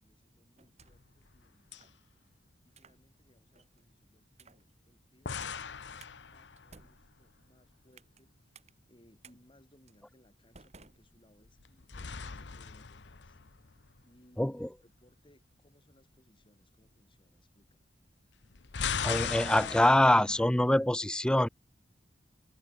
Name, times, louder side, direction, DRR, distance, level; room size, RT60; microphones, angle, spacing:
voice 1, 0.0-2.1 2.7-8.6 8.9-13.4 14.0-17.8, equal, 30° left, 7.0 m, -66 dB
sound 1, 0.6-1.2 1.7-2.0 2.7-3.0 3.5-3.8 4.3-4.7 5.4-5.6 6.0-6.1 6.6-8.2 8.5-8.7 9.2-9.4 9.9-10.0 10.5-11.6, right 4 dB, 40° right, 3.4 m, -58 dB
sound 2, 0.8-1.5 1.7-1.8 5.3-6.9 11.4-14.0 18.4-20.5, left 6 dB, 85° left, 0.9 m, -38 dB
voice 2, 14.4-14.7 19.0-21.5, left 1 dB, 5° left, 0.4 m, -25 dB
head